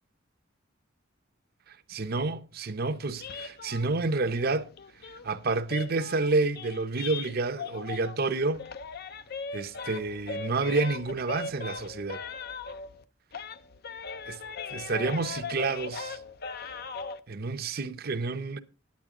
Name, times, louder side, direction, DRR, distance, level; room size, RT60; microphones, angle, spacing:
voice 1, 1.7-4.7 5.2-8.6 9.5-12.2 14.3-14.4 14.7-16.2 16.6-16.7 17.3-18.6, right 3 dB, 50° right, 0.7 m, -29 dB
sound 1, 3.2-8.3 8.5-13.0 13.3-17.2, left 4 dB, 50° left, 0.6 m, -39 dB
10.5 x 9.0 x 3.7 m
head